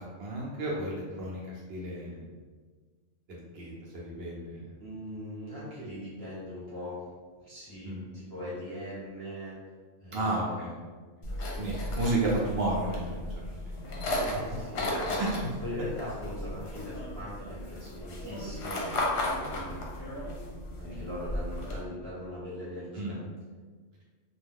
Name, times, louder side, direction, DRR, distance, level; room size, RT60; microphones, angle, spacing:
voice 1, 0.0-2.3 3.3-4.6 7.8-8.1 10.1-10.7 11.6-13.3 13.7-13.8 14.1-14.2 15.2-15.3 19.5-19.6 22.9-23.2, right 2 dB, 60° right, -4 dB, 0.8 m, -32 dB
voice 2, 4.8-7.1 7.4-9.7 10.0-10.7 14.1-15.2 15.6-19.2 19.5-20.3 20.8-23.2, left 1 dB, 20° right, -10 dB, 0.8 m, -41 dB
sound 1, 11.2-21.8, left 1 dB, 65° left, 0.8 m, -35 dB
2.5 x 2.3 x 3.4 m, 1.5 s
omnidirectional pair, 1.4 m